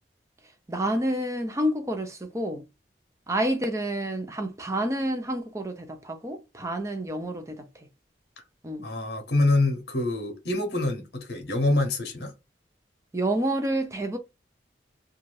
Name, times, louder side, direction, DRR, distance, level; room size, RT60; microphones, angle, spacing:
voice 1, 0.7-2.6 3.3-7.9 8.6-8.8 13.1-14.2, right 1 dB, 15° right, 0.5 m, -29 dB
voice 2, 8.8-12.3, left 2 dB, 65° left, 0.8 m, -25 dB
2.6 x 2.3 x 3.1 m
head